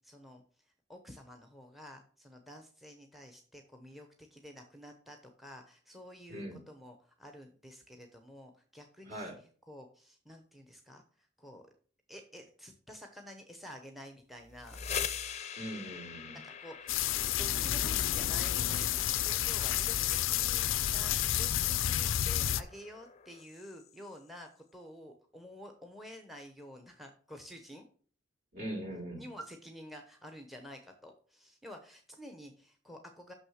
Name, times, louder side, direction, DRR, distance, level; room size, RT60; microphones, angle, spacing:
voice 1, 0.0-9.3 9.7-11.6 12.1-14.9 16.4-27.9 29.2-33.3, equal, ahead, 6 dB, 0.9 m, -50 dB
voice 2, 9.1-9.4 15.6-16.4 28.5-29.2, right 1 dB, 50° right, 0 dB, 3.3 m, -41 dB
sound 1, 14.4-24.2, left 7 dB, 35° left, 0.6 m, -44 dB
sound 2, 16.9-22.6, left 11 dB, 85° left, 0.5 m, -30 dB
6.4 x 6.2 x 6.4 m, 0.43 s
head